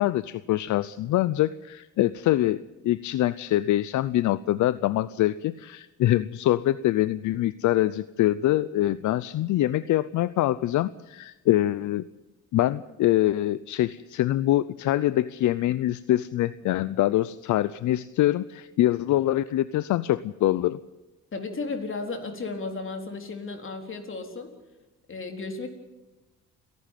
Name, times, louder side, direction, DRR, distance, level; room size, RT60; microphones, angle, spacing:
voice 1, 0.0-12.1 12.5-20.8, left 14 dB, 75° left, 16 dB, 0.6 m, -24 dB
voice 2, 21.3-24.5 25.1-25.7, left 3 dB, 45° left, 4 dB, 4.0 m, -34 dB
29.5 x 11.5 x 9.2 m, 1.1 s
cardioid pair, 90°, 30 cm